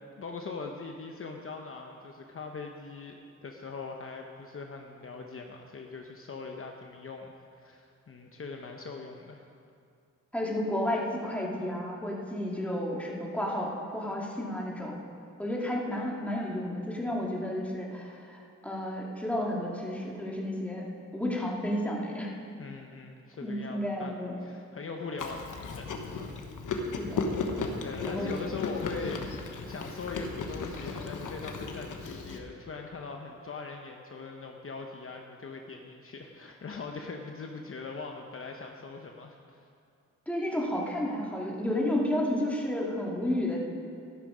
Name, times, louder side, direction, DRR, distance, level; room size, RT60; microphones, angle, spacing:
voice 1, 0.2-9.5 22.6-26.2 27.8-39.7, left 4 dB, 45° left, 2 dB, 0.9 m, -41 dB
voice 2, 10.3-15.0 15.4-20.8 21.1-22.3 23.4-24.4 27.0-27.4 28.0-28.4 40.3-43.6, left 1 dB, 5° left, -3 dB, 2.4 m, -32 dB
Chewing mastication, 25.2-32.4, left 4 dB, 85° left, 1.2 m, -35 dB
13.0 x 11.5 x 5.0 m, 2.4 s
wide cardioid pair, 100°, 30 cm